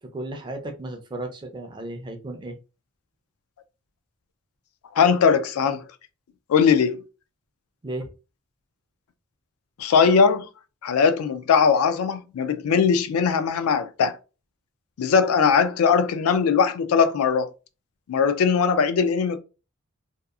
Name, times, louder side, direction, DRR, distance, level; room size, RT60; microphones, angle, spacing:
voice 1, 0.0-2.6 7.8-8.1, right 1 dB, 20° right, 0.4 m, -34 dB
voice 2, 4.9-5.8 6.5-7.0 9.8-10.5 10.8-14.2 15.0-17.5 18.1-19.4, left 6 dB, 85° left, 0.4 m, -20 dB
2.7 x 2.3 x 2.3 m
head